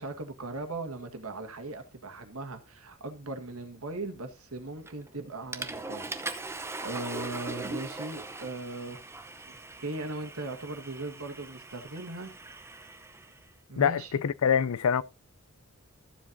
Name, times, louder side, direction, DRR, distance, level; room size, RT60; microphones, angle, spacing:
voice 1, 0.0-9.0 9.5-12.3 13.7-14.2, right 2 dB, 85° right, 1.7 m, -39 dB
Water / Toilet flush, 4.9-5.1 5.5-13.4, right 2 dB, 10° right, 0.7 m, -40 dB
voice 2, 13.8-15.0, left 7 dB, 75° left, 0.4 m, -25 dB
14.0 x 7.4 x 2.7 m
head